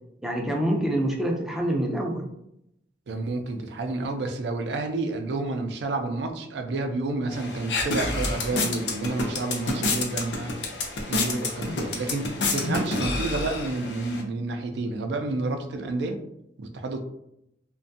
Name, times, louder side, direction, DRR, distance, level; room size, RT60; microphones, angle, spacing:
voice 1, 0.2-2.3, right 1 dB, ahead, -1 dB, 0.4 m, -26 dB
voice 2, 3.1-10.6 11.0-16.2 16.6-17.0, right 2 dB, 75° right, 6 dB, 0.4 m, -30 dB
sound 1, 7.3-14.2, left 3 dB, 75° left, 0.5 m, -29 dB
2.5 x 2.2 x 2.6 m, 0.78 s
head